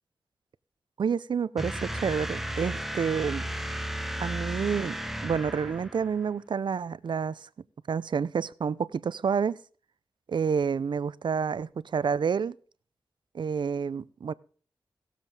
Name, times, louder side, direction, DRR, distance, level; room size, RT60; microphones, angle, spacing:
voice 1, 1.0-3.5 4.2-5.0 5.2-7.5 7.9-9.6 10.3-12.6 13.3-14.3, right 6 dB, 65° right, 0.5 m, -29 dB
sound 1, 1.6-6.3, equal, 5° right, 1.1 m, -34 dB
18.0 x 7.5 x 3.3 m
cardioid pair, 65°, 8 cm